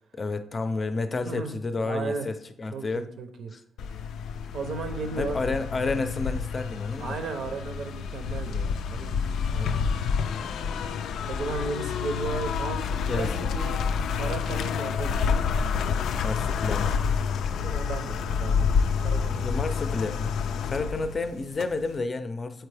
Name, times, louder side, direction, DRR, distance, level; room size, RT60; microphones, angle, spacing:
voice 1, 0.2-3.0 3.5-3.6 5.2-7.2 13.1-13.5 16.1-17.0 19.4-22.7, left 3 dB, 30° left, 10 dB, 0.5 m, -30 dB
voice 2, 1.2-1.6 1.8-2.3 2.7-3.5 4.5-5.4 7.0-9.1 9.5-9.9 11.3-13.8 14.1-15.3 17.6-19.6, right 4 dB, 70° right, 6 dB, 0.6 m, -35 dB
sound 1, 3.8-22.0, left 6 dB, 80° left, 0.3 m, -28 dB
7.7 x 4.5 x 3.3 m, 0.71 s
cardioid pair, 115°, 0 cm